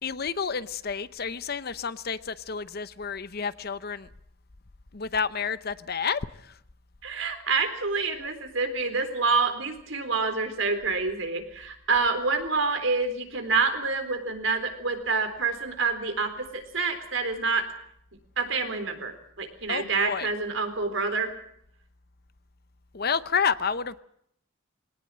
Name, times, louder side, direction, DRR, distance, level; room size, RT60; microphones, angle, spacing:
voice 1, 0.0-4.1 4.9-6.2 19.7-20.3 22.9-24.0, left 6 dB, 50° left, 0.8 m, -30 dB
voice 2, 7.0-17.6 18.4-19.1 19.4-21.3, right 4 dB, 70° right, 3.9 m, -27 dB
22.0 x 18.5 x 7.6 m
head